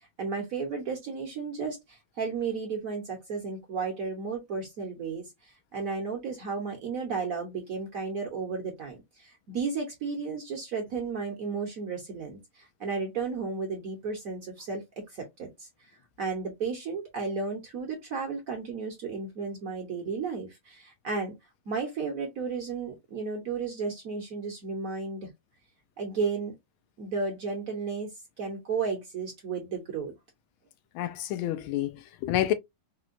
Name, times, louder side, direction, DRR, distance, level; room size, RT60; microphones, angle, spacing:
voice 1, 0.2-14.8 15.1-15.7 16.2-21.4 21.7-25.3 26.0-26.5 27.0-30.1, right 4 dB, 60° right, 0.9 m, -33 dB
voice 2, 30.9-32.5, left 13 dB, 90° left, 1.5 m, -29 dB
4.4 x 2.1 x 2.4 m
omnidirectional pair, 2.2 m